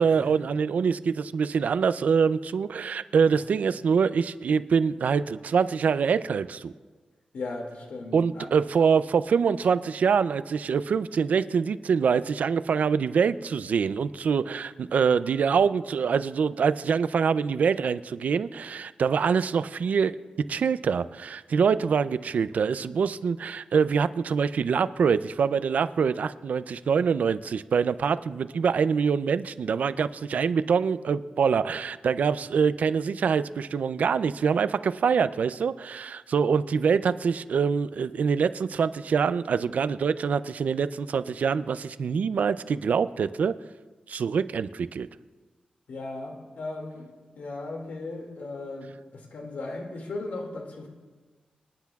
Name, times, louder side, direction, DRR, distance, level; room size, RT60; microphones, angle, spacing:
voice 1, 0.0-6.7 8.1-20.2 20.5-43.5 44.1-45.1, right 6 dB, 75° right, 14 dB, 0.4 m, -25 dB
voice 2, 7.3-8.5 45.9-47.1 47.4-50.9, left 2 dB, 85° left, 1 dB, 2.2 m, -37 dB
26.0 x 10.5 x 2.4 m, 1.3 s
wide cardioid pair, 115°, 3 cm